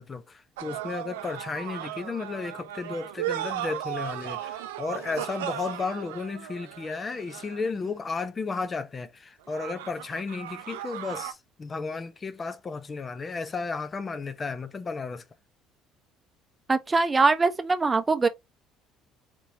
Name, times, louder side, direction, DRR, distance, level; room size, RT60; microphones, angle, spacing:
voice 1, 0.0-15.3, left 4 dB, 35° left, 0.7 m, -33 dB
sound 1, 0.6-7.9 9.5-11.3, right 12 dB, 80° right, 0.4 m, -36 dB
voice 2, 16.7-18.3, right 3 dB, 25° right, 0.6 m, -22 dB
4.4 x 3.1 x 2.7 m
hypercardioid pair, 60°, 0 cm